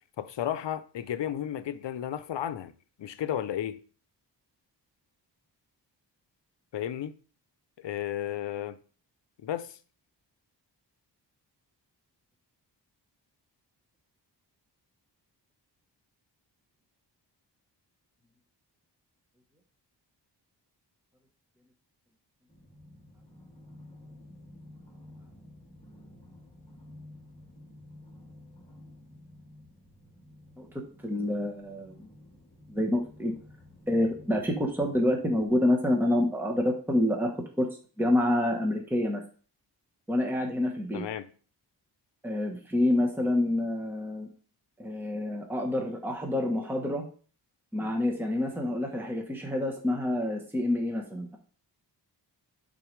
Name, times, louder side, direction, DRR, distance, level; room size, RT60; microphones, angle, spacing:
voice 1, 0.2-2.7 3.0-3.8 6.7-7.1 7.8-8.8 9.4-9.8 40.9-41.3, left 10 dB, 80° left, 0.6 m, -33 dB
sound 1, 22.5-35.5, left 1 dB, 15° left, 2.2 m, -52 dB
voice 2, 30.6-32.1 32.7-33.3 33.9-37.3 37.6-37.7 38.0-39.2 40.1-41.0 42.2-44.3 44.8-47.0 47.7-51.4, left 1 dB, 5° right, 1.0 m, -27 dB
8.5 x 3.8 x 3.2 m
wide cardioid pair, 130°, 43 cm